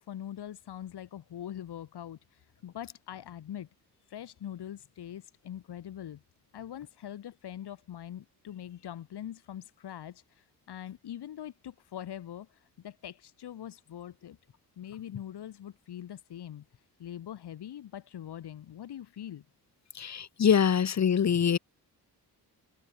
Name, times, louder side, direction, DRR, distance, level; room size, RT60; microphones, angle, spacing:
voice 1, 0.0-3.7 4.1-6.2 6.5-14.4 14.8-16.6 17.0-19.4, left 10 dB, 80° left, 7.3 m, -43 dB
voice 2, 19.9-21.6, left 8 dB, 45° left, 2.3 m, -24 dB
wide cardioid pair, 175°, 39 cm